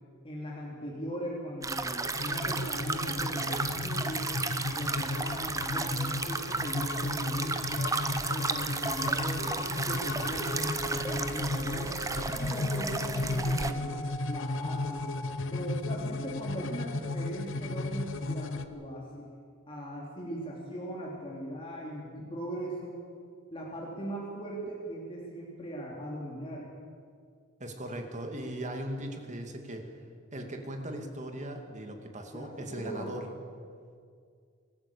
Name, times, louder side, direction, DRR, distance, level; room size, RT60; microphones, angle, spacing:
voice 1, 0.2-4.4 4.7-7.9 8.3-13.9 14.3-15.0 15.5-19.3 19.7-22.9 23.5-26.7 32.3-33.1, right 1 dB, 25° left, -3 dB, 3.1 m, -39 dB
sound 1, 1.6-13.7, right 3 dB, 15° right, 0.8 m, -34 dB
sound 2, 2.0-18.7, left 2 dB, 65° left, 1.0 m, -34 dB
sound 3, 9.4-15.4, right 1 dB, ahead, 1.7 m, -43 dB
voice 2, 27.6-29.8 30.3-33.3, right 1 dB, 35° right, 4 dB, 2.3 m, -38 dB
25.0 x 13.0 x 8.5 m, 2.2 s
head